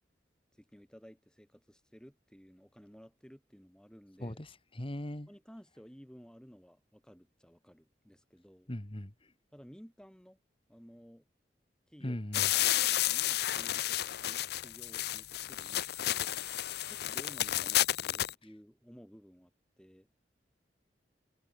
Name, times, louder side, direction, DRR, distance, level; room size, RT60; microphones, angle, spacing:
voice 1, 0.5-4.4 5.3-8.7 9.5-10.4 10.7-11.3 11.9-12.2 12.8-16.3 16.9-20.1, equal, 5° left, 7.1 m, -55 dB
voice 2, 4.8-5.3 8.7-9.1 12.0-12.5, left 1 dB, 30° left, 1.8 m, -38 dB
sound 1, 12.3-18.3, left 13 dB, 65° left, 0.5 m, -31 dB
head